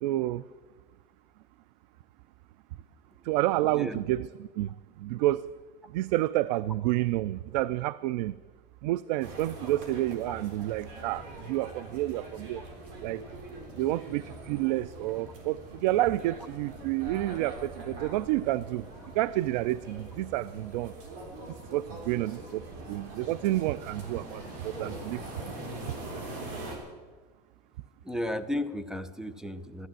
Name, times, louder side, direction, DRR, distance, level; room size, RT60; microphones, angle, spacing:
voice 1, 0.0-0.5 3.2-5.5 5.9-8.3 8.8-12.6 13.0-13.2 13.7-18.9 19.1-20.9 21.5-25.2, right 16 dB, 90° right, 19 dB, 0.4 m, -29 dB
sound 1, 9.2-26.8, right 2 dB, 65° right, 3.8 m, -43 dB
voice 2, 28.0-29.9, left 1 dB, 5° right, 14 dB, 0.6 m, -34 dB
14.5 x 12.0 x 7.6 m, 1.4 s
cardioid pair, 155°, 21 cm